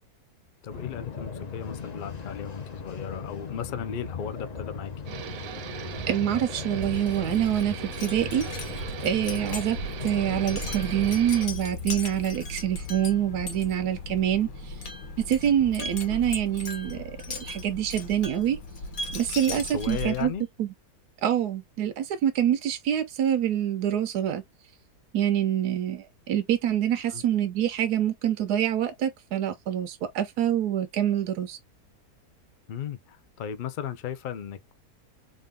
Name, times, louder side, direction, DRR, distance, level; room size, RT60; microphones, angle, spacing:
voice 1, 0.6-4.9 9.3-9.5 19.5-20.5 27.1-27.2 32.7-34.7, left 8 dB, 90° left, 0.4 m, -36 dB
sound 1, 0.7-11.2, left 5 dB, 35° left, 0.7 m, -38 dB
sound 2, 5.1-11.5, right 10 dB, 70° right, 1.0 m, -39 dB
voice 2, 6.1-14.8 15.3-17.0 17.4-18.6 19.1-20.3 20.6-20.7 21.2-24.4 25.1-31.6, right 10 dB, 85° right, 1.2 m, -26 dB
Wind chime, 6.7-20.4, left 2 dB, 65° left, 1.6 m, -37 dB
3.7 x 2.6 x 3.5 m
omnidirectional pair, 1.6 m